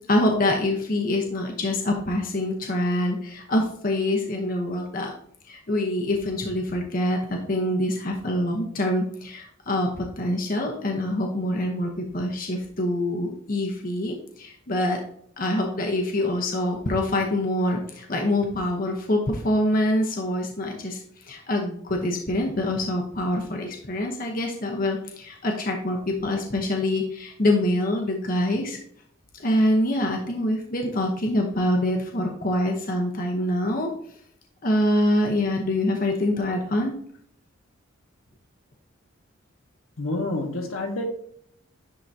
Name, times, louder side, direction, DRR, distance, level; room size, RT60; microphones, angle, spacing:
voice 1, 0.1-5.1 5.5-15.0 15.4-28.8 29.4-33.9 34.6-37.0, left 1 dB, 40° left, 1 dB, 0.9 m, -25 dB
voice 2, 40.0-41.0, left 2 dB, 80° left, 2 dB, 1.3 m, -28 dB
10.5 x 3.8 x 2.7 m, 0.64 s
head